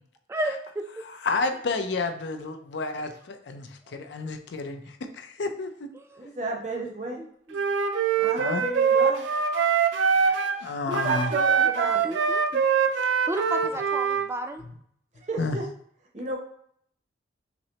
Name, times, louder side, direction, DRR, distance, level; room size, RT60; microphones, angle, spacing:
voice 1, 0.3-1.0 3.9-4.0 6.1-6.3 7.5-7.6 11.6-11.7 12.0-12.6 13.3-14.6, right 1 dB, 15° right, 5 dB, 0.3 m, -32 dB
voice 2, 1.0-5.9 8.4-8.6 10.2-11.3 15.4-15.6, left 3 dB, 75° left, 7 dB, 0.5 m, -31 dB
voice 3, 6.2-7.2 8.2-9.3 10.8-12.1 15.2-15.7 16.1-16.4, right 3 dB, 40° right, 0 dB, 0.7 m, -32 dB
Wind instrument woodwind instrument, 7.5-10.6 10.9-14.3, right 6 dB, 85° right, 0.4 m, -24 dB
5.9 x 2.1 x 2.8 m, 0.66 s
head